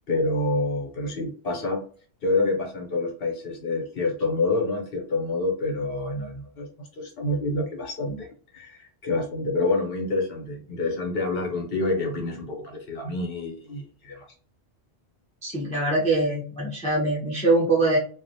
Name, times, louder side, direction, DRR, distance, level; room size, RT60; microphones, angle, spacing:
voice 1, 0.1-1.8 2.2-14.3, left 2 dB, 60° left, 1 dB, 0.9 m, -27 dB
voice 2, 15.4-18.0, right 2 dB, 10° left, -5 dB, 0.4 m, -23 dB
2.4 x 2.0 x 2.6 m, 0.43 s
omnidirectional pair, 1.2 m